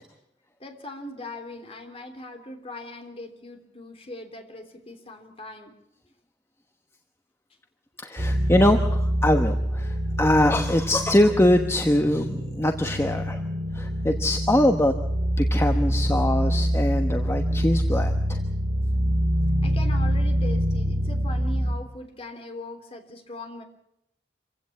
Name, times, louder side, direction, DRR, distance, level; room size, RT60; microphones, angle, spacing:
voice 1, 0.6-5.7 19.6-23.6, left 2 dB, 35° left, 5 dB, 3.2 m, -40 dB
voice 2, 8.0-13.4 13.7-14.9 15.4-18.4, left 1 dB, 15° left, 5 dB, 1.1 m, -23 dB
sound 1, 8.2-21.7, equal, 60° right, 2.8 m, -25 dB
26.5 x 16.0 x 8.6 m, 0.83 s
head